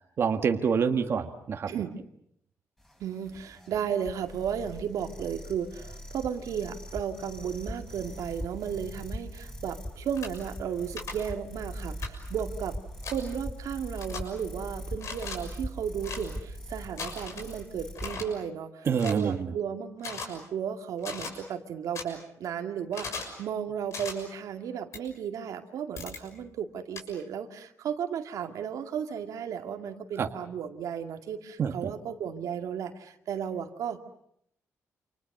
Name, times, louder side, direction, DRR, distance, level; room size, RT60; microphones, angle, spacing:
voice 1, 0.2-1.7 18.8-19.5 30.2-30.3 31.6-31.9, right 6 dB, 45° right, 5 dB, 1.7 m, -27 dB
sound 1, 2.8-18.2, equal, 5° left, 6.0 m, -41 dB
voice 2, 3.0-34.0, right 8 dB, 85° right, 5 dB, 2.3 m, -34 dB
sound 2, 10.2-10.3 11.0-11.1 12.0-12.1 13.0-13.2 14.0-14.2 15.0-15.4 16.0-16.2 17.0-17.5 18.0-18.2 19.0-19.2 20.0-20.3 21.0-21.3 22.0-22.1 22.9-23.3 23.9-24.1 24.9-25.0 26.0-26.2 27.0-27.1, left 5 dB, 60° left, 6.5 m, -37 dB
29.5 x 27.5 x 6.7 m, 0.70 s
wide cardioid pair, 160°, 6 cm